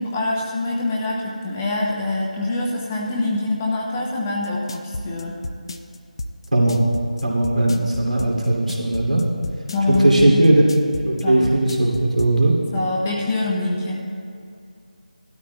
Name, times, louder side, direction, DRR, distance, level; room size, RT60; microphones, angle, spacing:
voice 1, 0.0-5.4 9.7-10.5 11.2-11.5 12.7-14.0, left 2 dB, 15° left, -3 dB, 0.8 m, -24 dB
sound 1, 4.4-12.3, left 2 dB, 35° left, 0.5 m, -31 dB
voice 2, 7.2-9.2 9.9-10.6 11.0-12.5, right 1 dB, 65° right, -3 dB, 2.8 m, -18 dB
17.5 x 12.5 x 2.3 m, 2.5 s
figure-of-eight pair, 160°, 4 cm